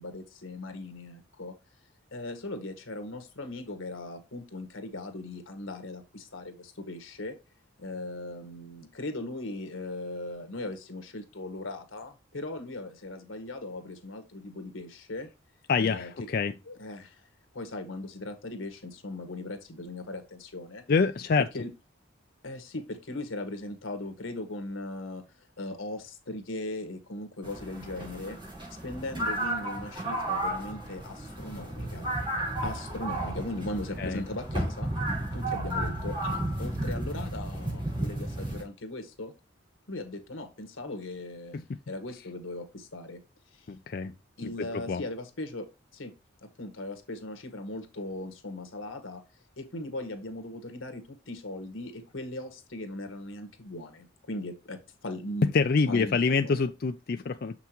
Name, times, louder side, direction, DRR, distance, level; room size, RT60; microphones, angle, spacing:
voice 1, 0.0-1.5 2.1-7.4 7.8-15.3 15.8-16.1 16.7-17.2 17.5-20.8 21.5-21.7 22.4-25.2 25.6-28.4 28.8-32.1 32.6-34.9 35.3-39.3 39.9-41.6 41.9-43.2 43.5-43.7 44.4-45.7 45.9-46.1 46.4-49.2 49.6-55.5 55.9-56.5, left 2 dB, 85° left, 1.6 m, -38 dB
voice 2, 15.7-16.5 20.9-21.5 34.0-34.2 41.5-41.6 43.7-44.1 44.4-45.0 55.4-57.5, left 4 dB, 50° left, 0.4 m, -26 dB
sound 1, 27.4-38.6, right 1 dB, 25° right, 4.4 m, -33 dB
7.1 x 5.9 x 2.9 m
head